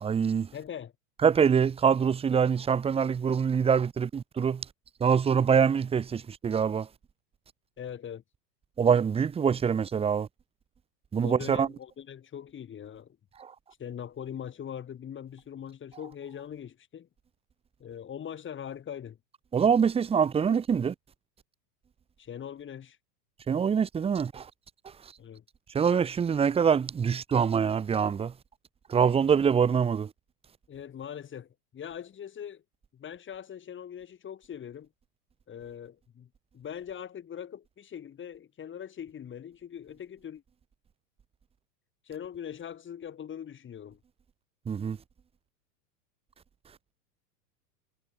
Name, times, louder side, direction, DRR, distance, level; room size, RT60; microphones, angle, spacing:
voice 1, 0.0-0.5 1.2-4.6 5.0-6.9 8.8-10.3 11.1-11.7 13.4-13.5 19.5-20.9 23.5-24.5 25.7-28.3 28.9-30.1 44.7-45.0, right 7 dB, 10° right, 0.9 m, -24 dB
voice 2, 0.5-0.9 7.8-8.2 11.2-13.2 13.8-17.1 17.8-19.2 22.2-23.0 25.2-25.4 30.7-32.6 32.9-34.9 35.5-36.3 36.5-40.4 42.1-44.0, left 9 dB, 25° left, 6.5 m, -41 dB
hypercardioid pair, 125°, 49 cm